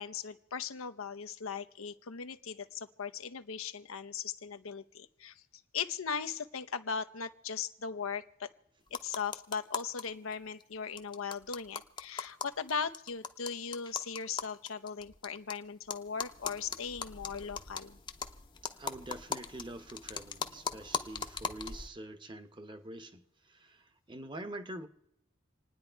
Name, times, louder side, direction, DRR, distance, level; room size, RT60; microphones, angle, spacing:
voice 1, 0.0-5.4 5.7-8.5 8.9-18.0, left 6 dB, 90° left, 0.8 m, -38 dB
sound 1, 8.9-10.0 10.3-10.4 10.6-10.7 11.0-15.5 15.9-21.9, left 5 dB, 25° left, 0.7 m, -40 dB
voice 2, 18.8-24.9, right 1 dB, 25° right, 0.9 m, -45 dB
27.5 x 9.7 x 4.6 m
head